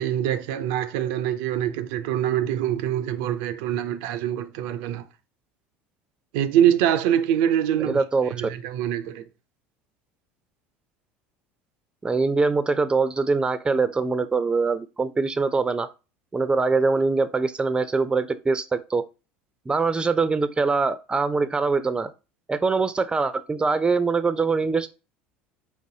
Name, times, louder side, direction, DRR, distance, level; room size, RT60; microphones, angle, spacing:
voice 1, 0.0-5.0 6.3-8.0 8.3-9.2, right 10 dB, 70° right, 0.5 m, -24 dB
voice 2, 7.8-8.3 12.0-15.9 16.3-19.0 19.7-22.1 22.5-24.9, right 4 dB, 15° right, 0.5 m, -23 dB
4.5 x 4.0 x 2.7 m
hypercardioid pair, 80°, 6 cm